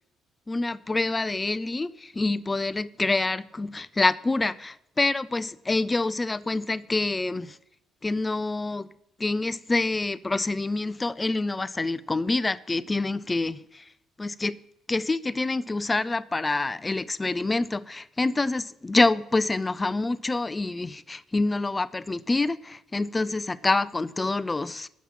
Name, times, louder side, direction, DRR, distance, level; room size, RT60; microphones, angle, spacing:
voice 1, 0.5-7.6 8.0-8.9 9.2-13.8 14.2-14.5 14.9-24.9, left 2 dB, 20° left, 0.4 m, -26 dB
9.3 x 7.2 x 7.1 m
cardioid pair, 95°, 0 cm